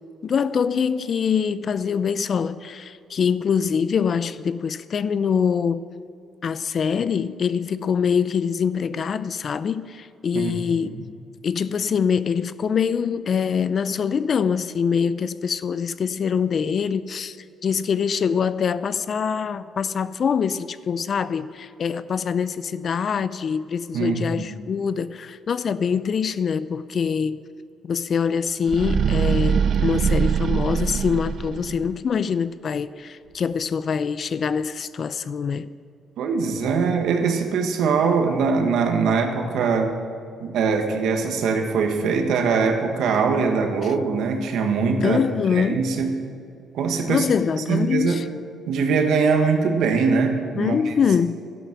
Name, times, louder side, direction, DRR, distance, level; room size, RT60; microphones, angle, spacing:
voice 1, 0.2-5.8 6.4-11.0 11.4-17.4 17.6-27.4 27.8-35.7 45.0-45.9 47.1-48.3 50.5-51.4, left 6 dB, 50° left, 0.5 m, -24 dB
voice 2, 23.9-24.4 36.2-39.9 40.4-45.2 45.5-46.1 46.7-47.2 47.7-48.2 48.7-50.9, right 5 dB, 80° right, 1.6 m, -22 dB
sound 1, 28.6-31.9, right 7 dB, 55° right, 0.5 m, -22 dB
12.5 x 11.0 x 6.2 m
cardioid pair, 100°, 0 cm